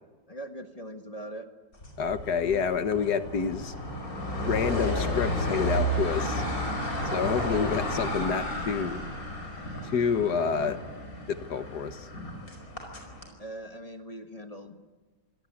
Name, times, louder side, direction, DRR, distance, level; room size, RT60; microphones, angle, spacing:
voice 1, 0.3-1.5 13.4-14.8, right 1 dB, 25° left, 6 dB, 1.5 m, -41 dB
sound 1, 1.8-13.3, equal, 60° left, 5.4 m, -32 dB
voice 2, 2.0-3.7 4.4-6.4 7.1-9.0 9.9-10.8 11.3-12.1, left 6 dB, 90° left, 10 dB, 1.8 m, -28 dB
25.5 x 18.0 x 10.0 m, 1.4 s
omnidirectional pair, 1.7 m